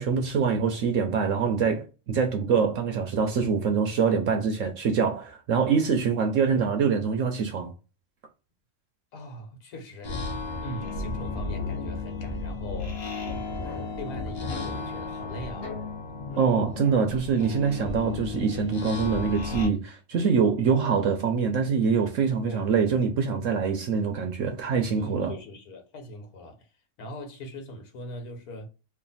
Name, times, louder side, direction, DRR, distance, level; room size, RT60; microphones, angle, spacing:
voice 1, 0.0-7.7 16.4-25.3, right 6 dB, 65° right, 1.0 m, -24 dB
voice 2, 9.1-10.2 10.6-13.1 13.6-15.8 22.4-22.6 25.0-26.7 27.0-28.7, left 1 dB, 80° left, 1.5 m, -41 dB
sound 1, 10.0-19.7, left 3 dB, 50° left, 0.9 m, -34 dB
3.2 x 2.5 x 3.9 m
omnidirectional pair, 1.5 m